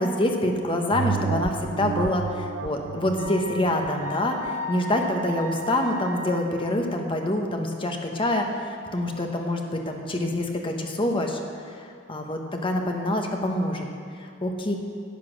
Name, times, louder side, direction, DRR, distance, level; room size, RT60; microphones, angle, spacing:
voice 1, 0.0-11.4 12.1-13.9 14.4-14.7, left 1 dB, 25° left, 3 dB, 1.1 m, -26 dB
sound 1, 0.9-5.8 6.3-6.4, right 6 dB, 85° right, 0.4 m, -33 dB
Wind instrument woodwind instrument, 3.2-6.7, left 1 dB, 40° right, 1.1 m, -36 dB
11.0 x 8.3 x 6.5 m, 2.5 s
head